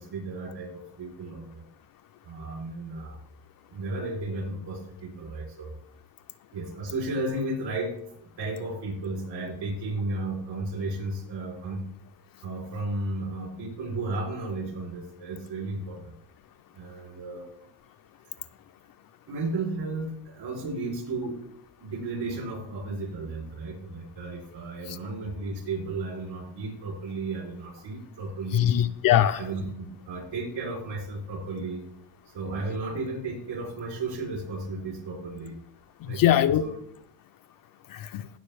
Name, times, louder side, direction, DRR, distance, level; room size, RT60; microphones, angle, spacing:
voice 1, 0.0-1.6 2.2-3.2 3.7-5.7 6.5-7.9 8.2-11.8 12.4-16.1 16.7-17.5 19.3-21.4 21.8-28.8 29.3-31.8 32.3-35.6 36.0-36.2 36.6-36.7, right 2 dB, 60° right, 2 dB, 3.7 m, -34 dB
voice 2, 28.5-29.4 36.0-36.6 37.9-38.3, left 11 dB, 50° left, 10 dB, 0.4 m, -22 dB
16.0 x 6.4 x 3.3 m, 0.70 s
cardioid pair, 130°, 48 cm